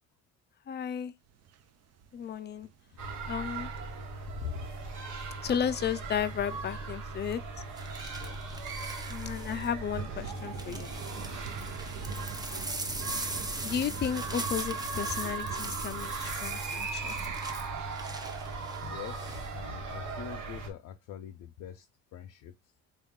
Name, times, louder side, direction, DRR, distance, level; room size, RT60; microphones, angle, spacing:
voice 1, 0.7-1.1 2.1-2.7 3.3-3.7 5.4-7.4 9.1-10.9 13.6-17.1, left 8 dB, 35° left, 0.4 m, -33 dB
sound 1, 1.3-17.4, right 7 dB, 55° right, 0.5 m, -47 dB
sound 2, 3.0-20.7, right 3 dB, 75° right, 1.2 m, -38 dB
sound 3, 6.1-6.4 7.8-9.7 10.2-19.5 19.9-20.3, right 2 dB, 15° right, 0.6 m, -41 dB
voice 2, 18.8-21.9 22.1-22.5, left 9 dB, 80° left, 0.6 m, -43 dB
3.6 x 2.4 x 3.6 m
cardioid pair, 90°, 30 cm